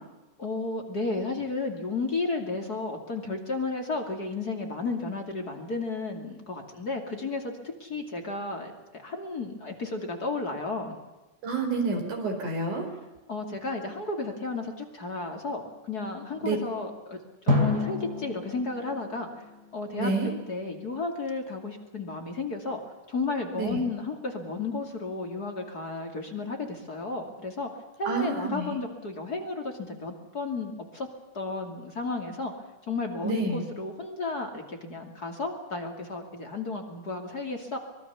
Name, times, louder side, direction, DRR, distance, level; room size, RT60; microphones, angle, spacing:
voice 1, 0.4-7.5 7.8-11.0 13.3-17.2 17.4-19.4 19.7-20.1 20.5-22.8 23.1-27.7 28.0-31.1 31.3-32.5 32.9-37.8, left 3 dB, 30° left, 3 dB, 2.8 m, -33 dB
voice 2, 11.4-12.9 16.4-16.6 20.0-20.3 23.6-23.8 28.1-28.8 33.2-33.6, right 3 dB, 80° right, 4 dB, 6.1 m, -28 dB
Drum, 17.5-20.4, left 2 dB, 30° right, 4.0 m, -30 dB
25.0 x 21.5 x 7.0 m, 1.1 s
omnidirectional pair, 3.5 m